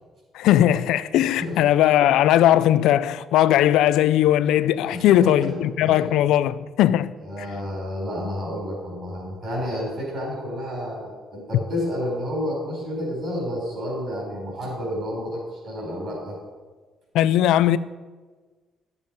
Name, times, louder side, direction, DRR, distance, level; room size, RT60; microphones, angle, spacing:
voice 1, 0.3-7.1 17.1-17.8, left 12 dB, 85° left, 0.4 m, -19 dB
voice 2, 4.9-5.5 5.8-6.0 7.2-16.4, left 1 dB, 40° right, 4.1 m, -30 dB
13.0 x 7.1 x 5.3 m
cardioid pair, 180°, 0 cm